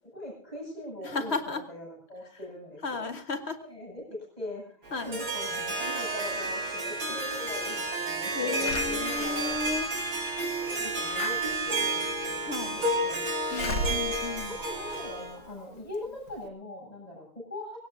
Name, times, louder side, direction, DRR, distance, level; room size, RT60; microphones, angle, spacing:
voice 1, 0.1-3.1 3.6-9.5 10.4-10.5 10.8-13.9 14.4-17.8, left 1 dB, 15° left, -2 dB, 8.2 m, -42 dB
voice 2, 1.0-1.7 2.8-3.6 4.9-5.1 8.3-9.9 12.4-12.8 13.5-14.5, left 3 dB, 35° left, 8 dB, 1.5 m, -34 dB
Harp, 4.8-15.4, right 2 dB, 85° right, 6.2 m, -31 dB
Slam / Alarm, 8.6-15.5 15.9-16.0 16.3-16.4, left 2 dB, 75° left, 2.7 m, -38 dB
23.5 x 18.0 x 2.7 m, 0.43 s
omnidirectional pair, 2.4 m